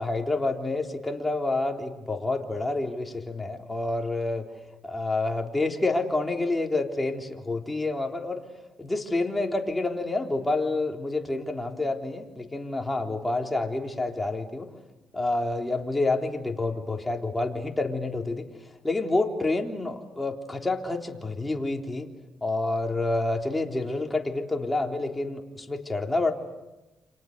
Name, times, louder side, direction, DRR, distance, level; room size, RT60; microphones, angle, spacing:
voice 1, 0.0-4.5 4.8-8.4 8.8-14.7 15.1-18.5 18.8-22.1 22.4-26.3, left 2 dB, 15° left, 2 dB, 3.6 m, -28 dB
29.5 x 27.0 x 6.7 m, 1.0 s
cardioid pair, 90°, 0 cm